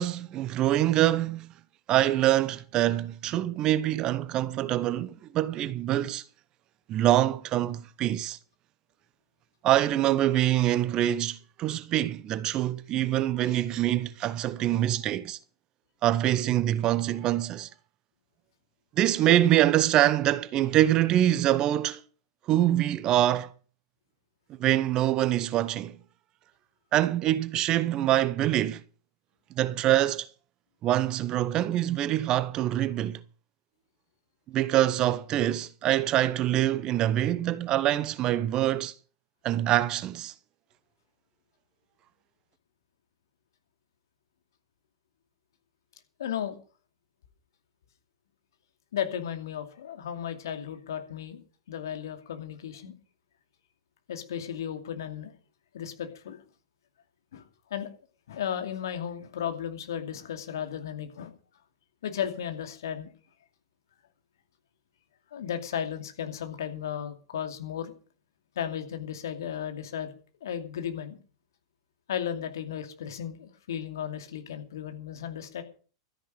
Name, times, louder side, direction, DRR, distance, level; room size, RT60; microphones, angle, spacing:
voice 1, 0.0-1.5 1.9-6.2 6.9-8.4 9.6-15.4 16.0-17.7 19.0-22.0 22.5-23.5 24.6-26.0 26.9-28.8 29.6-30.3 30.8-33.2 34.5-38.9 39.4-40.3, right 13 dB, 35° right, 0.9 m, -25 dB
voice 2, 46.2-46.6 48.9-51.4 51.7-52.9 54.1-55.3 55.7-56.4 57.3-57.4 57.7-57.9 58.3-61.3 62.0-63.1 65.3-67.9 68.6-70.1 70.4-71.2 72.1-75.6, left 9 dB, 65° left, 2.5 m, -34 dB
13.5 x 10.0 x 6.6 m
figure-of-eight pair, 100°, 2 cm